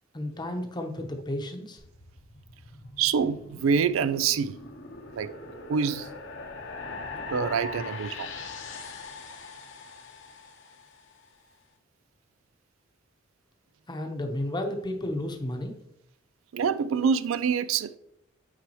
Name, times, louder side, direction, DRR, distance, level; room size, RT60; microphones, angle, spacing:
voice 1, 0.1-1.8 13.9-15.7, left 1 dB, 20° left, 0.9 m, -32 dB
sound 1, 1.8-11.1, left 3 dB, 65° left, 1.0 m, -41 dB
voice 2, 3.0-4.6 5.1-5.3 5.7-6.1 7.3-8.3 16.5-18.0, right 6 dB, 90° right, 0.4 m, -26 dB
9.0 x 4.7 x 3.0 m
head